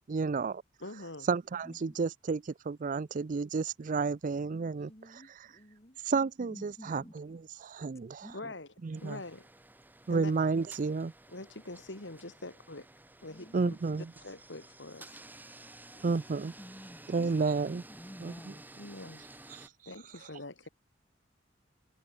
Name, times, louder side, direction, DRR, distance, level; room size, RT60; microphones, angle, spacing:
voice 1, 0.1-0.6 1.3-4.9 6.1-8.3 8.8-9.2 10.1-11.1 13.5-14.0 16.0-16.5 17.1-17.8 18.2-18.5 19.5-19.6, right 4 dB, 45° right, 0.4 m, -31 dB
voice 2, 0.8-1.3 8.3-8.7 9.0-9.5 10.1-10.3 11.3-12.9 13.2-13.8 14.2-15.2 18.8-19.2 19.8-20.7, left 2 dB, 70° left, 3.0 m, -44 dB
voice 3, 1.6-2.0 6.5-7.1 8.2-8.5 16.6-17.4 17.7-18.6, equal, 15° left, 1.8 m, -49 dB
voice 4, 4.7-6.0 13.2-13.7 15.9-16.4, equal, 30° left, 6.0 m, -57 dB
sound 1, 8.9-19.7, right 2 dB, 10° right, 1.8 m, -53 dB
head